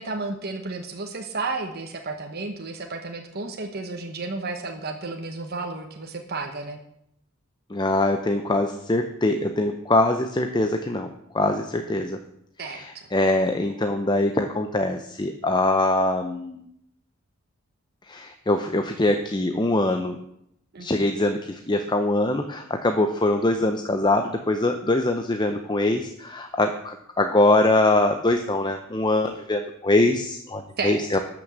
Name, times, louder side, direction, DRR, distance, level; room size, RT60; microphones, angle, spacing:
voice 1, 0.0-6.8 12.6-12.8 20.7-21.1 30.8-31.2, right 3 dB, 50° right, 3 dB, 1.2 m, -32 dB
voice 2, 7.7-11.1 11.3-12.2 12.6-16.7 18.1-20.2 20.8-31.2, left 2 dB, 20° left, 6 dB, 0.7 m, -23 dB
12.5 x 6.1 x 7.5 m, 0.76 s
head